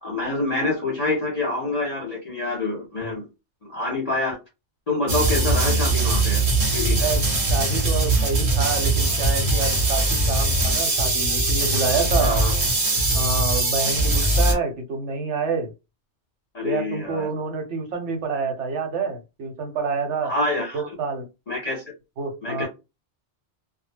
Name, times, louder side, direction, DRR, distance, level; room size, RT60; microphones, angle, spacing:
voice 1, 0.0-3.2 3.7-4.4 4.9-6.4 6.7-7.1 12.2-12.5 14.5-14.6 16.5-17.3 20.2-20.8 21.5-21.8 22.4-22.7, left 2 dB, 40° left, 0.7 m, -26 dB
sound 1, 5.1-14.5, right 2 dB, 35° right, 0.7 m, -21 dB
voice 2, 7.5-12.5 13.1-15.7 16.6-20.3 20.7-21.3 22.2-22.7, right 4 dB, 80° right, 1.0 m, -27 dB
2.1 x 2.0 x 3.2 m
omnidirectional pair, 1.2 m